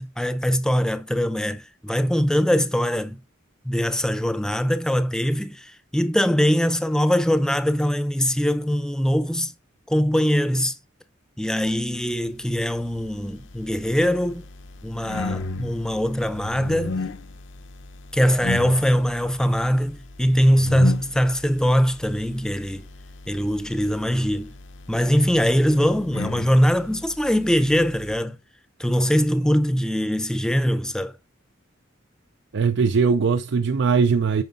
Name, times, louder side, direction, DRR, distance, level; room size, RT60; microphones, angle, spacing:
voice 1, 0.0-3.2 3.6-9.5 9.9-10.7 11.4-14.4 14.8-17.0 18.1-22.9 23.3-24.5 24.9-28.4 28.8-31.1, equal, 5° left, 0.6 m, -22 dB
sound 1, 12.8-28.2, left 3 dB, 70° left, 0.8 m, -36 dB
voice 2, 32.5-34.4, right 5 dB, 60° right, 0.5 m, -20 dB
9.3 x 5.5 x 3.8 m
head